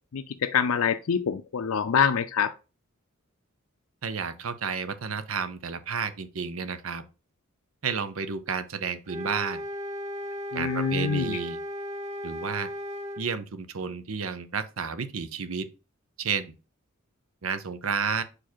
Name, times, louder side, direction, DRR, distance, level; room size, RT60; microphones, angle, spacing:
voice 1, 0.1-2.5 10.5-11.4, left 6 dB, 80° left, 0.5 m, -25 dB
voice 2, 4.0-7.0 7.8-9.6 10.5-11.6 12.2-12.7 13.2-15.7 16.2-16.5 17.4-18.2, right 6 dB, 80° right, 0.7 m, -31 dB
sound 1, 9.1-13.2, left 1 dB, 30° right, 0.6 m, -35 dB
4.8 x 4.8 x 4.4 m
head